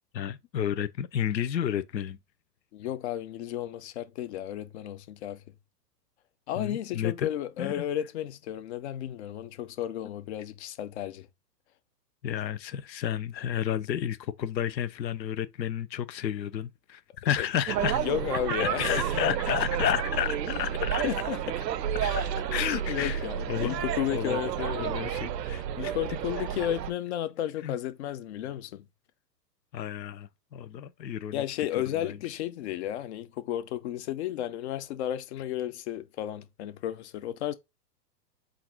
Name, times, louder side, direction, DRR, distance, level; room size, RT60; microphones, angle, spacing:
voice 1, 0.1-2.2 6.6-7.3 7.6-7.9 12.2-18.0 18.6-21.0 22.0-22.2 22.5-23.8 24.1-25.9 27.6-27.7 29.7-31.4 32.0-32.2, left 10 dB, 90° left, 0.6 m, -31 dB
voice 2, 2.7-5.4 6.5-11.3 17.4-17.5 17.8-19.1 21.0-21.6 22.0-22.3 22.7-25.0 25.8-28.9 31.3-37.5, left 11 dB, 45° left, 0.5 m, -33 dB
sound 1, 17.7-26.9, right 9 dB, 75° right, 0.6 m, -31 dB
3.8 x 2.5 x 4.4 m
hypercardioid pair, 115°, 50 cm